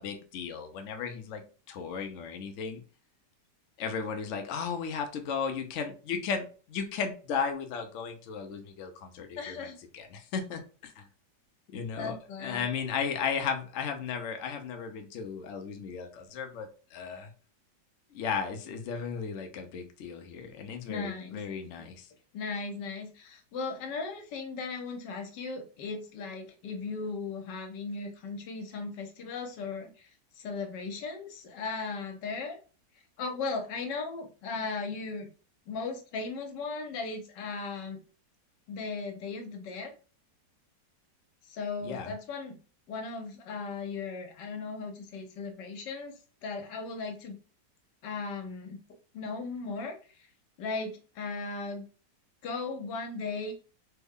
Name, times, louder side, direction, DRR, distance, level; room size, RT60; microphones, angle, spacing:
voice 1, 0.0-1.4 1.7-2.8 3.8-9.5 9.9-11.0 11.7-17.3 18.1-22.1 41.8-42.1, left 6 dB, 65° left, 5 dB, 0.7 m, -35 dB
voice 2, 9.4-9.8 12.0-12.7 20.9-21.4 22.3-30.1 30.3-32.6 33.2-35.3 35.7-38.0 38.7-39.9 41.4-42.6 42.9-46.1 46.4-47.4 48.0-48.8 49.1-50.0 50.6-51.8 52.4-53.5, left 4 dB, 80° left, 4 dB, 1.4 m, -37 dB
3.4 x 2.2 x 3.5 m, 0.36 s
omnidirectional pair, 1.9 m